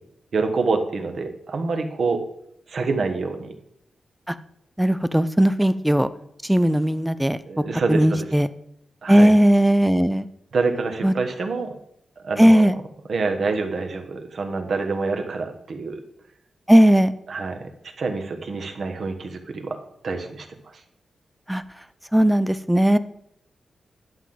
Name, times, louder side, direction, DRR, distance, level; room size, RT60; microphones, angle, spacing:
voice 1, 0.3-2.2 2.7-3.5 7.5-8.3 9.0-9.3 10.5-11.7 12.2-12.6 13.1-16.0 17.3-17.6 18.0-20.5 20.7-20.8, right 4 dB, 60° right, 5 dB, 1.4 m, -26 dB
voice 2, 4.8-6.1 6.4-7.4 7.9-8.5 9.1-10.3 11.0-11.1 12.4-12.8 16.7-17.1 21.5-21.6 22.1-23.0, equal, 5° right, 13 dB, 0.4 m, -17 dB
11.0 x 3.9 x 7.6 m, 0.75 s
wide cardioid pair, 115°, 0 cm